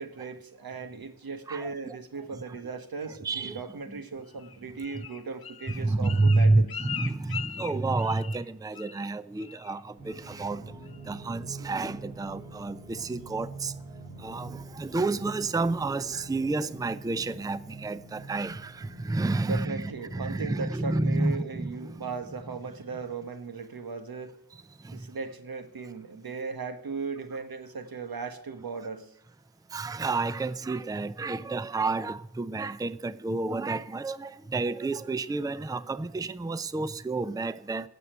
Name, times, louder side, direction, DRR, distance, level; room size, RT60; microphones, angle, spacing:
voice 1, 0.0-6.7 19.4-24.4 24.9-29.1, right 4 dB, 80° right, 1.4 m, -37 dB
voice 2, 1.5-2.0 2.5-2.6 3.2-3.6 3.9-4.0 5.7-10.7 11.1-13.7 14.2-22.1 24.8-25.1 29.7-37.9, right 3 dB, 10° right, 0.5 m, -30 dB
Bird, 4.4-8.5 8.7-9.1 9.4-9.7 10.1-10.5 10.9-11.0, left 7 dB, 80° left, 0.9 m, -40 dB
sound 1, 10.0-20.1, right 2 dB, 25° right, 5.5 m, -45 dB
16.0 x 6.9 x 9.0 m
cardioid pair, 60°, 35 cm